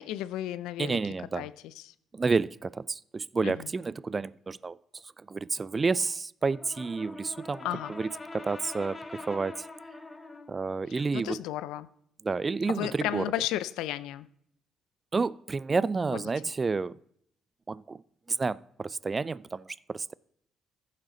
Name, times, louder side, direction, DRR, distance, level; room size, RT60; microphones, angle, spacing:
voice 1, 0.0-1.0 1.3-1.9 3.4-3.7 7.6-7.9 10.9-11.9 12.7-14.3 16.1-16.3, left 13 dB, 75° left, 0.4 m, -34 dB
voice 2, 0.8-1.5 2.1-4.8 5.3-9.7 10.5-11.4 12.2-13.2 15.1-17.0 17.7-18.0 18.3-20.1, right 4 dB, 35° right, 0.3 m, -30 dB
Brass instrument, 6.4-10.6, left 3 dB, 25° left, 1.4 m, -44 dB
15.0 x 7.5 x 3.9 m
hypercardioid pair, 50°, 0 cm